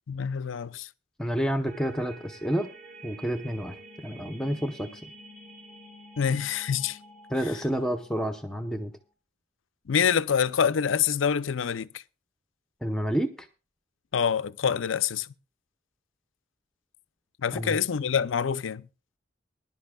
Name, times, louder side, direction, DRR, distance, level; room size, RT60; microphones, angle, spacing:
voice 1, 0.1-0.9 6.2-7.0 9.9-12.0 14.1-15.3 17.4-18.9, left 7 dB, 85° left, 0.5 m, -26 dB
voice 2, 1.2-2.7 3.0-3.8 4.0-5.0 7.3-8.9 12.8-13.5 17.5-17.8, equal, 5° left, 0.7 m, -29 dB
sound 1, 1.7-8.9, right 1 dB, 45° right, 4.4 m, -49 dB
21.0 x 11.0 x 2.3 m
head